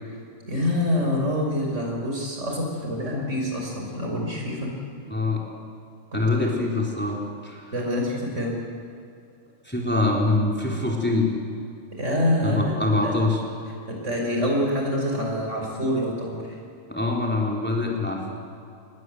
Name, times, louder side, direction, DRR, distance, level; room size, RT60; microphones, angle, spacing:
voice 1, 0.5-4.7 6.1-6.5 7.7-8.6 11.9-13.2 13.9-16.6, left 1 dB, 70° right, 0 dB, 5.8 m, -26 dB
voice 2, 5.1-5.5 6.1-7.2 7.4-7.6 9.7-11.3 12.4-13.4 16.9-18.3, left 2 dB, 10° left, -2 dB, 3.8 m, -24 dB
27.5 x 21.0 x 7.9 m, 2.5 s
omnidirectional pair, 1.3 m